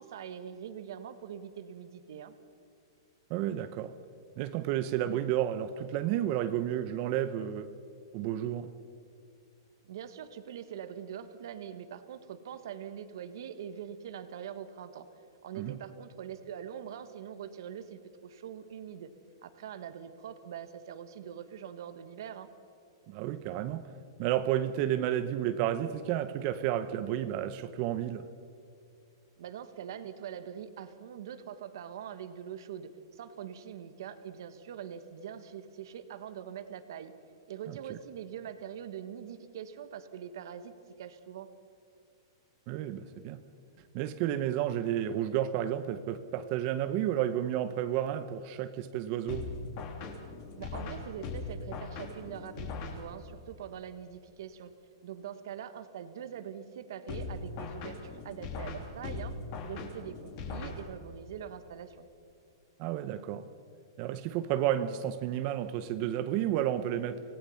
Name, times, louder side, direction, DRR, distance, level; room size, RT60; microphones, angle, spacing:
voice 1, 0.0-2.3 9.8-15.1 15.4-19.1 19.4-22.5 29.4-37.1 37.5-40.7 41.0-41.5 50.5-54.7 55.0-62.1, right 9 dB, 65° right, 1.5 m, -43 dB
voice 2, 3.3-3.9 4.4-7.7 8.1-8.7 15.6-15.8 23.1-23.9 24.2-28.3 37.7-38.0 42.7-43.4 43.9-49.5 62.8-63.5 64.0-67.2, right 11 dB, 40° right, 0.8 m, -31 dB
sound 1, 49.3-53.5 57.1-61.3, left 3 dB, 40° left, 3.0 m, -40 dB
26.0 x 18.5 x 5.7 m
hypercardioid pair, 150°, 2 cm